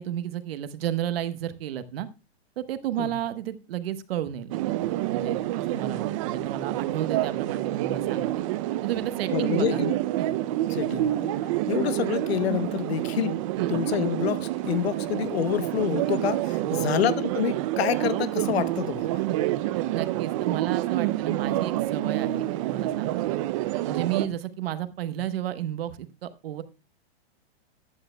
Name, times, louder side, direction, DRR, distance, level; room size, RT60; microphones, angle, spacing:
voice 1, 0.0-2.1 2.6-8.4 8.8-9.8 10.2-10.3 11.4-11.5 13.5-13.8 16.5-17.1 19.3-19.4 19.7-23.3 23.8-26.6, right 11 dB, 65° right, 1.1 m, -32 dB
sound 1, 4.5-24.3, right 15 dB, 30° right, 0.4 m, -28 dB
voice 2, 9.3-9.9 10.7-11.4 11.7-13.4 13.7-19.2 21.3-21.4 24.2-24.3, left 11 dB, 70° left, 0.9 m, -28 dB
14.5 x 9.7 x 2.2 m
hypercardioid pair, 140°, 33 cm